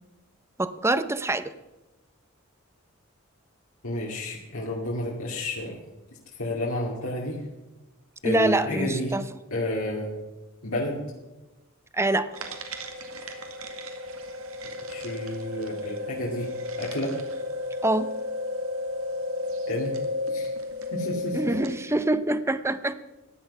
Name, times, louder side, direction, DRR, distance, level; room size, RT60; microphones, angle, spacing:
voice 1, 0.6-1.5 8.2-9.2 11.9-12.3 17.8-18.1 21.3-22.9, right 2 dB, 15° right, 13 dB, 0.7 m, -25 dB
voice 2, 3.8-5.8 6.4-7.4 8.2-9.1 9.5-10.1 10.6-11.0 14.9-16.5 16.8-17.1 19.7-19.9 20.3-20.5 20.9-21.5, left 1 dB, 80° left, -4 dB, 2.6 m, -30 dB
sound 1, 12.3-21.9, left 2 dB, 80° right, 1.9 m, -33 dB
15.5 x 10.5 x 5.6 m, 1.1 s
head